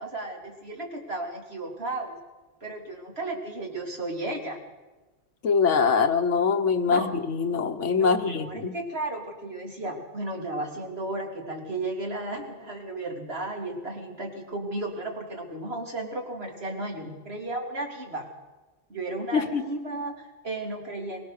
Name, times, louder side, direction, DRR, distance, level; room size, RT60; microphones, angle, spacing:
voice 1, 0.0-2.2 2.6-4.6 6.9-7.1 8.0-18.3 18.9-21.3, right 2 dB, 55° right, 1 dB, 3.3 m, -34 dB
voice 2, 5.4-8.7 19.3-19.6, left 5 dB, 75° left, 9 dB, 1.4 m, -23 dB
23.0 x 17.0 x 6.6 m, 1.2 s
omnidirectional pair, 1.3 m